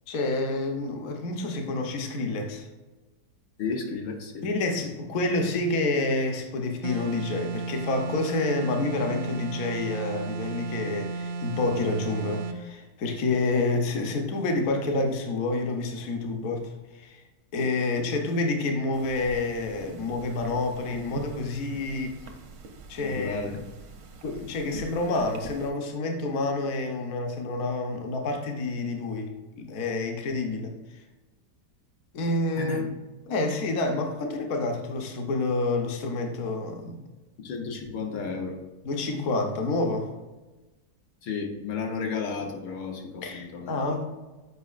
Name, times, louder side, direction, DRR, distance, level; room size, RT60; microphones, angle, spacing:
voice 1, 0.1-2.7 4.4-17.2 17.5-22.2 22.9-23.5 24.2-30.7 32.1-32.8 33.3-37.0 38.8-40.1 43.2-44.0, left 2 dB, 60° left, 3 dB, 1.1 m, -28 dB
voice 2, 3.6-4.5 23.0-23.6 32.6-32.9 37.4-38.6 41.2-43.9, left 4 dB, 85° left, 2 dB, 1.5 m, -33 dB
sound 1, 6.8-12.6, right 4 dB, 85° right, 1.3 m, -34 dB
sound 2, 18.9-25.7, right 4 dB, 65° right, 0.6 m, -44 dB
8.3 x 5.0 x 2.4 m, 1.1 s
omnidirectional pair, 1.9 m